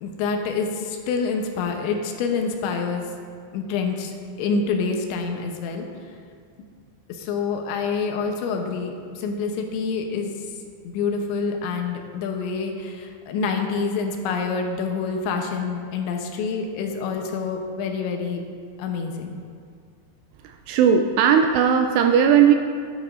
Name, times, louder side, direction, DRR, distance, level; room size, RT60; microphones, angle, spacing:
voice 1, 0.0-3.1 3.5-5.9 7.1-10.3 10.8-18.4 18.8-19.4, left 5 dB, 80° left, 3 dB, 3.1 m, -27 dB
voice 2, 20.4-22.6, right 8 dB, 85° right, 5 dB, 2.4 m, -17 dB
13.0 x 11.0 x 2.5 m, 2.1 s
omnidirectional pair, 5.4 m